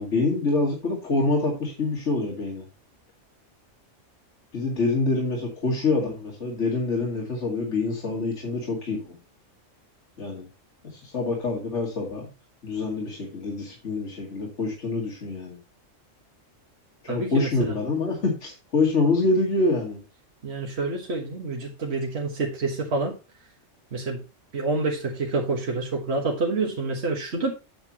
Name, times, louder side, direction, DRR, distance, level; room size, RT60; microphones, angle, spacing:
voice 1, 0.0-2.7 4.5-9.2 10.2-10.5 10.8-12.3 12.6-15.6 17.0-20.0, left 3 dB, 65° left, -1 dB, 2.6 m, -26 dB
voice 2, 17.1-17.8 20.4-23.1 23.9-24.2 24.5-27.5, right 3 dB, 55° right, 0 dB, 1.8 m, -28 dB
8.9 x 8.1 x 2.9 m, 0.30 s
omnidirectional pair, 1.3 m